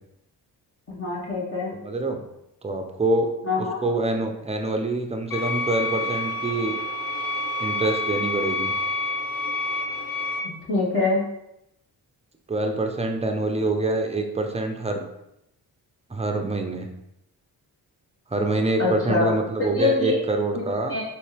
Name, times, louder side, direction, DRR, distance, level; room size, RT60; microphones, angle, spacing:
voice 1, 0.9-1.7 3.4-3.8 10.7-11.2 18.8-19.3 19.7-20.2 20.5-20.6 20.9-21.0, left 3 dB, 35° left, -6 dB, 1.6 m, -24 dB
voice 2, 1.8-2.2 2.6-3.3 3.6-6.8 7.6-8.7 12.5-15.0 16.1-16.9 18.3-21.0, right 2 dB, 15° right, 4 dB, 0.7 m, -25 dB
sound 1, 5.3-10.4, left 2 dB, 55° left, 0.9 m, -28 dB
4.3 x 3.0 x 3.3 m, 0.82 s
cardioid pair, 55°, 40 cm